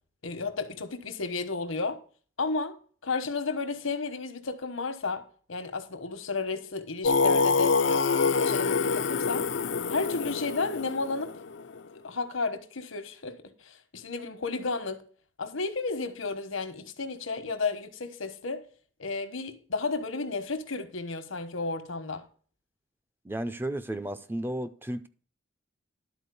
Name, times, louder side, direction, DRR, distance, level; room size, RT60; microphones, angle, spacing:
voice 1, 0.2-2.0 2.4-2.8 3.0-9.5 9.9-11.4 11.9-15.0 15.4-18.6 19.0-22.3, left 3 dB, 85° left, 1.2 m, -33 dB
Singing, 7.0-11.8, left 4 dB, 60° left, 0.4 m, -26 dB
voice 2, 23.2-25.1, right 1 dB, 10° right, 0.4 m, -33 dB
11.5 x 4.3 x 6.8 m
head